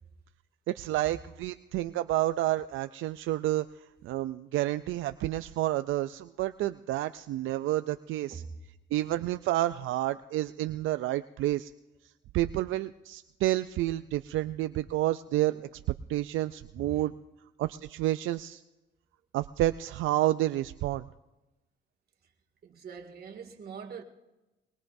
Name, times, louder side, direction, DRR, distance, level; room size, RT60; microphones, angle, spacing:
voice 1, 0.7-3.7 4.0-8.4 8.9-11.7 12.3-15.5 16.1-17.1 17.6-18.6 19.3-21.1, right 15 dB, 80° right, 0.5 m, -29 dB
voice 2, 16.8-17.1 22.6-24.0, right 6 dB, 50° right, 2.3 m, -43 dB
22.5 x 22.0 x 2.6 m
cardioid pair, 90°, 20 cm